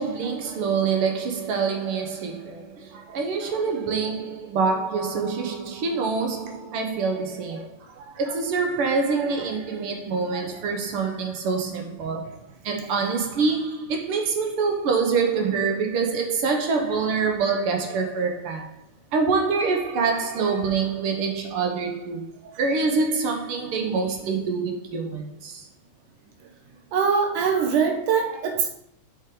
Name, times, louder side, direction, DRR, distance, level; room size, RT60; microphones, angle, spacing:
voice 1, 0.0-7.7 8.2-18.7 19.1-22.2 22.6-25.7, right 4 dB, 60° right, 1.7 m, -25 dB
voice 2, 2.9-3.6 7.9-8.2 10.3-10.7 26.9-28.7, right 6 dB, 85° right, 2.7 m, -25 dB
8.1 x 6.3 x 3.9 m
omnidirectional pair, 3.5 m